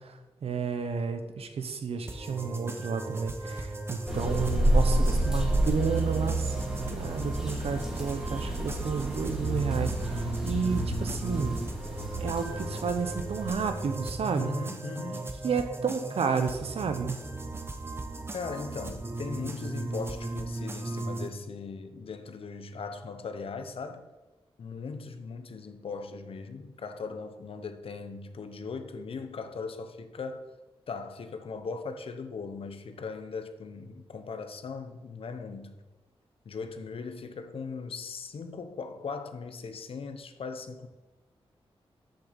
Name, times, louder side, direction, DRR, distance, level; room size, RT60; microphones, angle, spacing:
voice 1, 0.0-6.6 6.9-11.6 12.2-14.5 15.4-17.2, right 5 dB, 75° right, 1.1 m, -31 dB
sound 1, 2.1-21.3, right 2 dB, 25° right, 0.8 m, -37 dB
sound 2, 4.1-14.2, right 1 dB, 5° right, 2.4 m, -30 dB
voice 2, 14.4-15.4 18.3-24.1 24.6-30.5 30.9-35.8 36.4-40.9, left 4 dB, 65° left, 0.9 m, -39 dB
8.0 x 7.1 x 7.2 m
wide cardioid pair, 150°, 10 cm